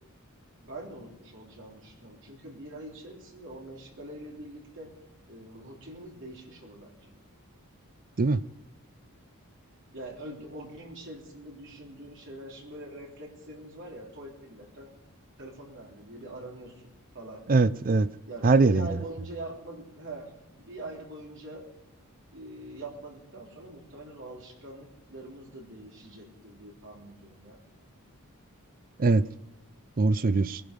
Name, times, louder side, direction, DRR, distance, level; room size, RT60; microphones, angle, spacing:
voice 1, 0.6-4.9 5.3-7.1 9.9-14.9 15.4-17.4 18.3-21.7 22.3-27.6, right 1 dB, 60° right, 3.6 m, -43 dB
voice 2, 17.5-18.1 18.4-18.9 29.0-29.2 30.0-30.6, right 3 dB, 40° right, 0.5 m, -22 dB
20.5 x 11.0 x 5.2 m
head